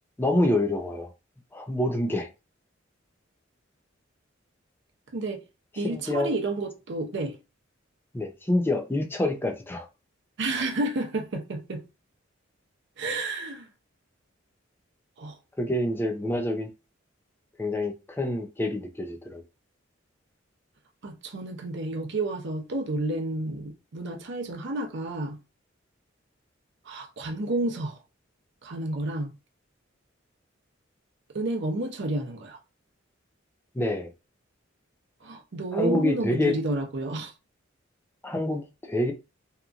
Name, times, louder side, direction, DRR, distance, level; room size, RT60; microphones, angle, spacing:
voice 1, 0.2-1.1 1.5-2.3 5.8-6.3 8.1-9.9 15.6-16.7 17.6-19.4 33.7-34.1 35.7-36.5 38.2-39.1, left 1 dB, 10° left, 0.4 m, -27 dB
voice 2, 5.1-5.4 5.8-7.4 10.4-11.8 13.0-13.7 15.2-15.4 21.0-25.4 26.8-28.0 28.6-29.3 31.3-32.6 35.2-37.3, right 2 dB, 65° right, 0.6 m, -30 dB
2.8 x 2.4 x 2.4 m
head